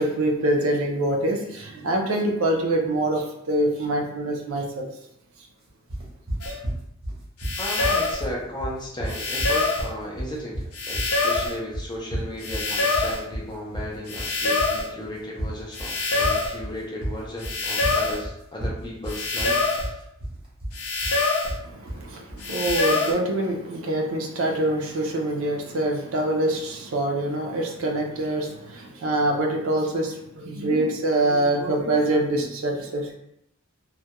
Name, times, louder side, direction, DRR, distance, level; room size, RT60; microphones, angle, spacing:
voice 1, 0.0-4.9 5.4-5.5 21.6-33.2, right 1 dB, 65° right, 2 dB, 0.4 m, -25 dB
sound 1, 5.9-22.9, right 1 dB, 25° right, 0.7 m, -33 dB
sound 2, 6.4-6.6 7.4-8.2 9.1-9.9 10.7-11.6 12.4-13.2 14.1-14.9 15.7-16.6 17.4-18.2 19.1-19.9 20.7-21.6 22.4-23.1, left 3 dB, 80° left, 0.6 m, -25 dB
voice 2, 7.6-20.0, left 1 dB, 20° left, -2 dB, 0.4 m, -35 dB
2.2 x 2.1 x 2.8 m, 0.79 s
head